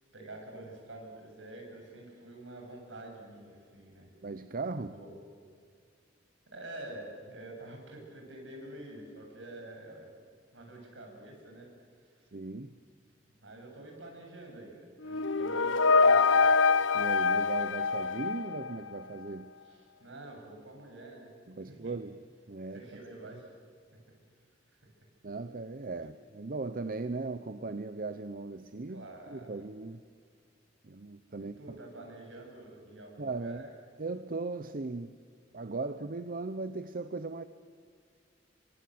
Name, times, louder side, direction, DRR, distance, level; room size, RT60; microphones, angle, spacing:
voice 1, 0.1-4.1 4.9-5.1 6.5-10.1 10.5-11.7 12.0-12.3 13.4-16.5 19.6-21.3 21.6-21.9 22.7-23.5 28.9-29.6 31.4-33.7, right 1 dB, 75° right, 1 dB, 7.7 m, -47 dB
voice 2, 4.2-5.0 12.3-12.8 16.9-19.5 21.5-22.2 22.5-23.4 25.2-30.0 30.8-31.6 33.2-33.7 34.0-35.1 35.5-37.4, right 3 dB, 50° right, 11 dB, 0.8 m, -38 dB
sound 1, 15.0-19.0, left 4 dB, 80° left, 0.8 m, -25 dB
29.5 x 24.5 x 7.8 m, 2.1 s
head